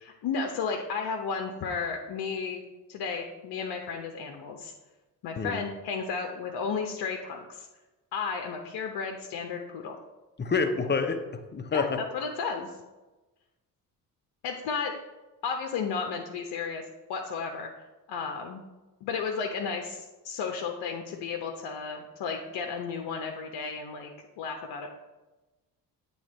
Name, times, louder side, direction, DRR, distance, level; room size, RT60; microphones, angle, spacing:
voice 1, 0.0-2.6 2.9-4.7 5.2-7.7 8.1-9.9 11.7-11.9 12.1-12.8 14.4-14.9 15.4-16.8 17.1-17.7 18.1-18.6 19.0-24.1 24.4-24.9, left 5 dB, 50° left, 3 dB, 0.9 m, -33 dB
voice 2, 10.4-12.0, left 4 dB, 20° left, 7 dB, 0.8 m, -28 dB
8.8 x 3.2 x 4.3 m, 1.1 s
hypercardioid pair, 50°, 50 cm